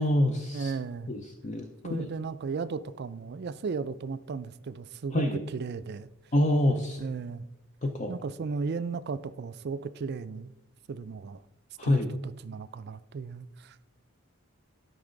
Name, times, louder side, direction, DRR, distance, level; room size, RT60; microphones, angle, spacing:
voice 1, 0.0-0.7 1.1-2.1 5.1-5.4 6.3-7.0 7.8-8.1 11.8-12.1, left 1 dB, 35° left, 0.6 m, -26 dB
voice 2, 0.5-1.1 1.8-6.1 7.0-7.5 8.1-10.5 10.9-11.4 11.8-13.8, right 5 dB, 50° right, 0.4 m, -35 dB
12.0 x 5.4 x 3.9 m
head